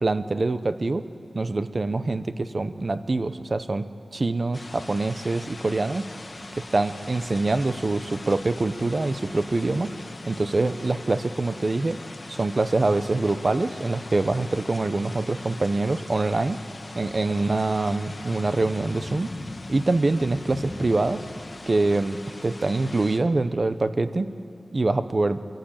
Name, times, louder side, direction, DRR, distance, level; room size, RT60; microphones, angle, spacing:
voice 1, 0.0-1.0 1.3-3.9 4.1-6.0 6.7-9.9 10.3-12.0 12.3-16.6 16.9-19.3 19.7-21.2 21.7-24.3 24.7-25.4, right 2 dB, 45° right, 11 dB, 0.9 m, -24 dB
sound 1, 4.5-23.2, left 2 dB, 40° left, 1.3 m, -41 dB
23.0 x 14.5 x 9.0 m, 2.3 s
wide cardioid pair, 80°, 0 cm